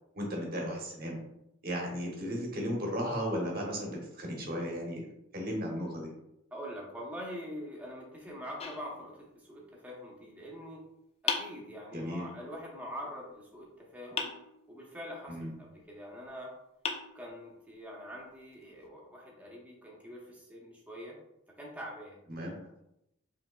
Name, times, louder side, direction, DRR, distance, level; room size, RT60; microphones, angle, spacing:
voice 1, 0.1-1.2 1.6-5.1 5.3-6.1 11.9-12.3 15.3-15.5 22.3-22.5, equal, 45° right, -1 dB, 1.0 m, -35 dB
voice 2, 6.5-10.8 11.2-14.3 14.7-16.5 17.1-21.2 21.6-22.2, equal, 5° right, -3 dB, 0.8 m, -44 dB
sound 1, 8.6-9.6 11.3-12.3 14.2-15.1 16.2-16.3 16.8-17.8, left 5 dB, 30° left, 0.3 m, -38 dB
4.9 x 3.4 x 2.3 m, 0.81 s
head